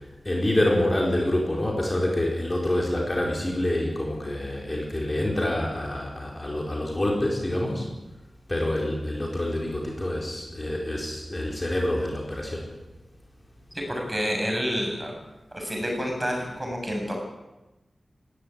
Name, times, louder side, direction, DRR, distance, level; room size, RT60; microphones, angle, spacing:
voice 1, 0.2-7.9 8.5-12.7, left 1 dB, 25° left, -1 dB, 4.6 m, -26 dB
voice 2, 13.7-15.1 15.5-17.1, equal, 15° right, 1 dB, 7.4 m, -29 dB
20.0 x 16.0 x 9.7 m, 1.0 s
wide cardioid pair, 110°, 0 cm